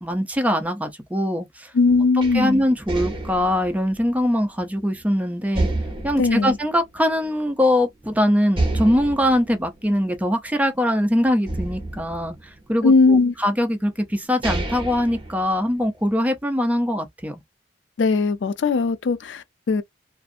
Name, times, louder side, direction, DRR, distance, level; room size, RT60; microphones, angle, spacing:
voice 1, 0.0-1.7 2.3-5.7 6.0-12.4 12.7-17.4, equal, 10° right, 0.5 m, -22 dB
voice 2, 1.7-2.6 6.2-6.6 12.8-13.3 18.0-19.8, left 4 dB, 80° left, 0.4 m, -19 dB
sound 1, 2.2-5.0 5.5-7.5 7.8-7.9 8.5-10.9 11.5-13.0 13.8-13.9 14.2-16.0, right 2 dB, 30° right, 0.9 m, -30 dB
2.5 x 2.4 x 2.5 m
head